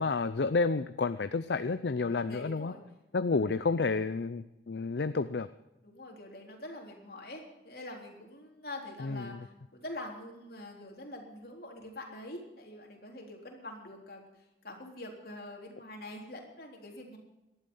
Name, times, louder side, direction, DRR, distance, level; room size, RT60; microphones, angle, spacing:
voice 1, 0.0-2.7 3.1-5.5 9.0-9.4, left 4 dB, 75° left, 12 dB, 0.6 m, -30 dB
voice 2, 2.1-2.8 3.3-3.7 5.8-17.2, left 1 dB, 60° left, 0 dB, 3.7 m, -45 dB
18.5 x 12.5 x 5.6 m, 0.95 s
head